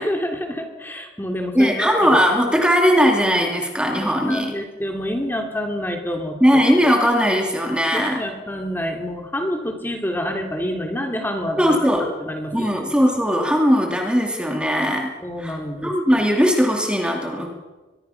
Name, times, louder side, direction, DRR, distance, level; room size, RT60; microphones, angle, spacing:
voice 1, 0.0-2.2 4.0-6.6 7.9-11.9 12.2-12.8 15.2-15.9, equal, 10° left, 3 dB, 2.7 m, -27 dB
voice 2, 1.5-4.5 6.4-8.2 11.6-12.1 12.5-15.1 15.4-15.6 15.8-17.6, equal, 5° right, 1 dB, 2.5 m, -19 dB
23.5 x 22.0 x 5.8 m, 1.2 s
head